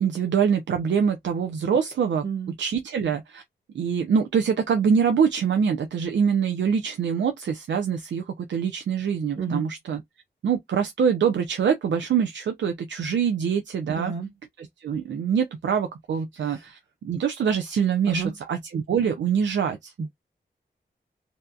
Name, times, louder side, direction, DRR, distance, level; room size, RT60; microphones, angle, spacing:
voice 1, 0.0-3.4 3.7-10.0 10.4-14.1 14.6-19.9, right 7 dB, 75° right, 0.5 m, -24 dB
voice 2, 13.9-14.3 18.1-18.3 20.0-20.1, right 5 dB, 90° right, 1.3 m, -29 dB
2.7 x 2.3 x 2.3 m
cardioid pair, 50°, 19 cm